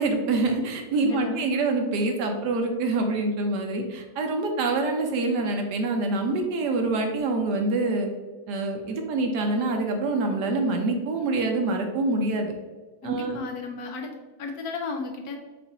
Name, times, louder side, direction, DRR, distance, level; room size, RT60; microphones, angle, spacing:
voice 1, 0.0-8.1 8.5-12.5 13.0-13.4, right 2 dB, 75° right, 3 dB, 1.3 m, -26 dB
voice 2, 1.0-1.5 13.0-14.1 14.4-15.4, left 4 dB, 70° left, 3 dB, 1.0 m, -34 dB
4.8 x 2.6 x 4.1 m, 1.2 s
omnidirectional pair, 1.8 m